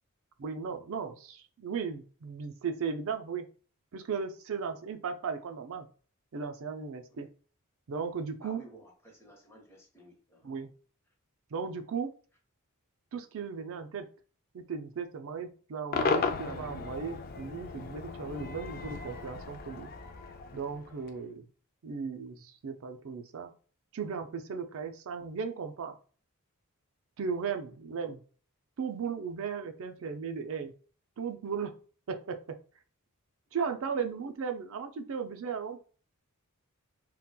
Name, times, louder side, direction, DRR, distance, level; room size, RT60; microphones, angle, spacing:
voice 1, 0.4-3.5 3.9-5.9 6.3-7.3 7.9-8.6 10.4-10.7 11.5-12.1 13.1-14.1 14.5-19.9 20.5-21.4 21.8-23.5 23.9-26.0 27.2-28.2 28.8-30.7 31.2-31.8 32.1-32.6 33.5-35.8, right 6 dB, 65° right, 7 dB, 0.5 m, -36 dB
voice 2, 8.4-10.5 21.2-21.3, right 1 dB, 10° left, -1 dB, 0.9 m, -54 dB
Cheering / Crowd / Fireworks, 15.9-21.2, left 5 dB, 40° left, 0.4 m, -35 dB
4.0 x 2.2 x 2.2 m, 0.40 s
head